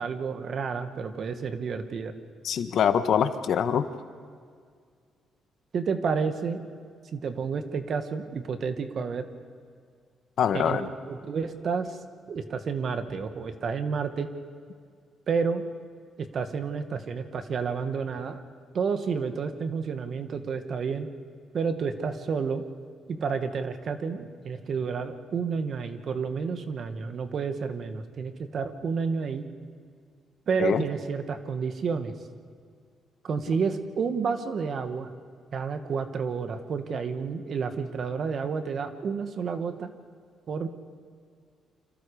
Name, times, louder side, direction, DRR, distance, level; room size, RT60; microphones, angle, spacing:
voice 1, 0.0-2.1 5.7-6.6 7.1-9.3 10.5-12.0 12.3-14.3 15.3-15.6 16.2-18.4 18.7-21.1 21.5-22.6 23.1-29.4 30.5-32.1 33.2-35.1 35.5-39.9 40.5-40.7, right 5 dB, 55° right, 8 dB, 2.0 m, -30 dB
voice 2, 2.4-3.9 10.4-10.9 30.6-30.8, left 8 dB, 65° left, 10 dB, 1.4 m, -24 dB
29.5 x 26.0 x 5.1 m, 2.1 s
cardioid pair, 90°, 0 cm